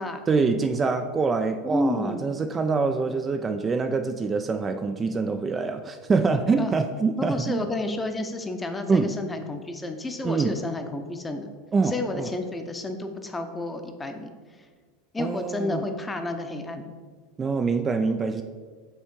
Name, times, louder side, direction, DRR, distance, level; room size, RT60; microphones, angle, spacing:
voice 1, 0.3-7.6 8.9-9.1 10.2-10.6 11.7-12.3 15.2-15.8 17.4-18.4, right 4 dB, 25° right, 7 dB, 0.3 m, -25 dB
voice 2, 1.6-2.2 6.6-6.7 7.2-11.5 11.8-14.3 15.1-16.9, left 2 dB, 15° left, 6 dB, 0.7 m, -31 dB
5.3 x 3.5 x 5.2 m, 1.5 s
hypercardioid pair, 90°, 0 cm